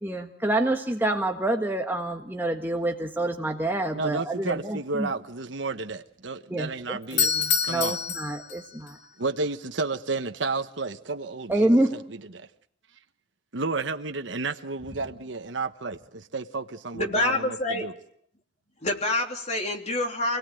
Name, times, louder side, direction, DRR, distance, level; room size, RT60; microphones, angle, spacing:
voice 1, 0.0-5.1 6.5-9.0 11.5-12.0, right 1 dB, 10° right, 1.5 m, -27 dB
voice 2, 3.9-8.0 9.2-11.8 12.3-12.5 13.5-17.9, right 3 dB, 75° right, 1.2 m, -32 dB
Doorbell, 7.0-9.0, left 6 dB, 65° left, 2.2 m, -26 dB
voice 3, 16.9-17.9 18.8-20.4, left 2 dB, 35° left, 3.2 m, -27 dB
28.0 x 18.5 x 9.1 m
head